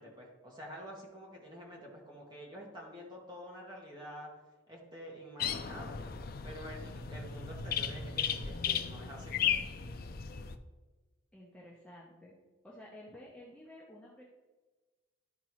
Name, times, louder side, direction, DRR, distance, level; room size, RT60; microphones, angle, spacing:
voice 1, 0.0-4.3 4.7-6.0 6.4-9.5, equal, 20° right, -2 dB, 1.6 m, -48 dB
sound 1, 5.4-10.6, left 8 dB, 50° left, 0.4 m, -35 dB
voice 2, 11.3-12.3 12.6-14.2, left 1 dB, 5° left, -5 dB, 0.9 m, -52 dB
12.0 x 4.5 x 3.1 m, 1.2 s
head